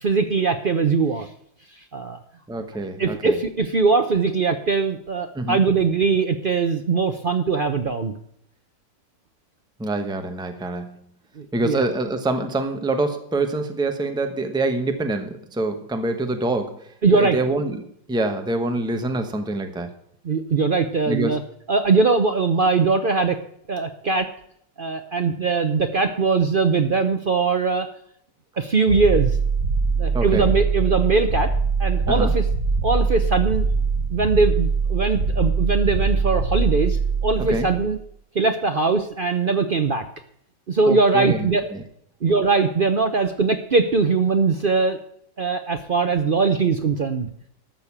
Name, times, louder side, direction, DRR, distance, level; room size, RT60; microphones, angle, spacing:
voice 1, 0.0-1.3 1.9-2.2 3.0-8.1 11.4-11.8 17.0-17.4 20.2-21.4 21.7-23.4 23.7-24.3 24.8-27.9 28.6-29.4 30.0-31.5 31.8-32.4 32.8-33.7 34.1-38.0 38.3-40.0 40.7-41.6 42.2-45.0 45.4-47.3, right 4 dB, 70° right, 7 dB, 0.5 m, -21 dB
voice 2, 2.5-3.4 5.3-5.6 9.8-11.0 11.5-16.8 17.1-17.8 18.1-19.9 21.1-21.3 30.1-30.5 32.1-32.3 37.5-37.7 40.9-41.8, right 2 dB, 5° right, 6 dB, 0.8 m, -25 dB
sound 1, 28.9-38.0, right 4 dB, 40° right, 2.2 m, -22 dB
13.0 x 6.7 x 7.3 m, 0.69 s
omnidirectional pair, 2.0 m